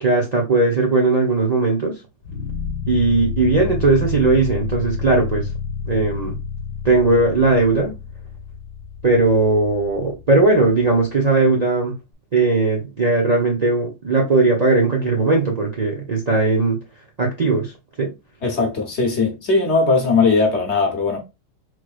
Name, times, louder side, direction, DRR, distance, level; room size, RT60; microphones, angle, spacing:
voice 1, 0.0-2.0 2.9-5.5 5.9-6.4 6.8-7.9 9.0-11.9 12.3-16.8 17.2-18.1, right 3 dB, 85° right, 0.3 m, -18 dB
sound 1, 2.2-11.3, left 6 dB, 70° left, 1.5 m, -30 dB
voice 2, 18.4-21.2, left 4 dB, 50° left, 0.9 m, -19 dB
4.1 x 3.0 x 2.4 m
omnidirectional pair, 1.9 m